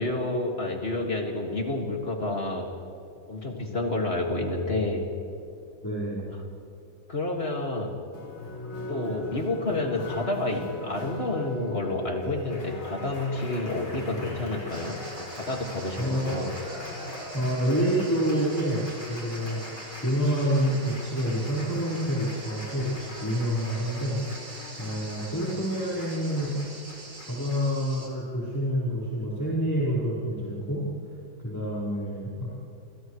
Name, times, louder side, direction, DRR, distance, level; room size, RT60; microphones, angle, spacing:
voice 1, 0.0-2.7 3.3-5.1 7.1-7.9 8.9-16.5, left 2 dB, 30° left, 1 dB, 2.3 m, -29 dB
voice 2, 5.8-6.3 16.0-16.4 17.3-22.9 23.2-24.2 24.8-26.6 27.2-30.9 31.4-32.5, equal, 10° left, -9 dB, 4.7 m, -28 dB
Applause, 8.1-27.8, left 1 dB, 80° left, 6.0 m, -42 dB
sound 1, 14.7-28.1, right 2 dB, 45° right, 4.2 m, -45 dB
28.5 x 28.5 x 3.2 m, 2.6 s
omnidirectional pair, 2.1 m